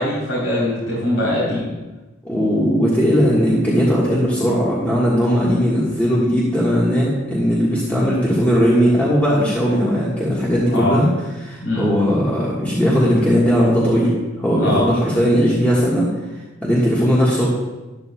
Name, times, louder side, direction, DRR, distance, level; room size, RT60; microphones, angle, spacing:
voice 1, 0.0-1.7 10.7-10.9 11.6-11.9 14.6-14.9, left 1 dB, 85° left, -8 dB, 3.7 m, -21 dB
voice 2, 2.2-11.1 11.4-14.1 14.4-16.0 16.6-17.5, equal, 10° left, -7 dB, 1.5 m, -18 dB
12.0 x 12.0 x 2.3 m, 1.1 s
head